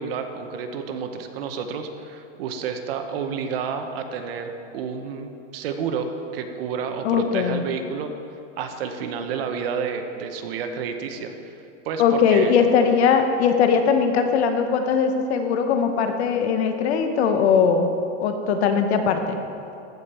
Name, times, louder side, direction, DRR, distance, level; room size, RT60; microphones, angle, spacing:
voice 1, 0.0-8.1 8.6-11.5 11.8-12.0 12.3-12.5, right 6 dB, 50° right, 6 dB, 0.9 m, -30 dB
voice 2, 7.0-7.6 12.0-17.9 18.2-19.4, left 6 dB, 60° left, 7 dB, 1.0 m, -20 dB
14.5 x 5.1 x 4.3 m, 2.7 s
supercardioid pair, 160°, 36 cm